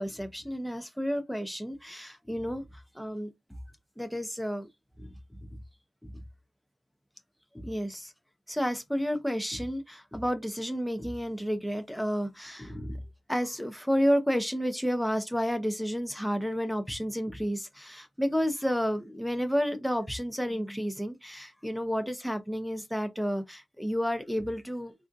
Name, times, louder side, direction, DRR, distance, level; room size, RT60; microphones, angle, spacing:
voice 1, 0.0-2.6 2.9-3.3 4.0-4.7 5.0-5.2 6.0-6.1 7.5-8.1 8.5-13.0 13.3-24.9, equal, ahead, 0.5 m, -31 dB
3.4 x 2.5 x 2.5 m
wide cardioid pair, 160°, 0 cm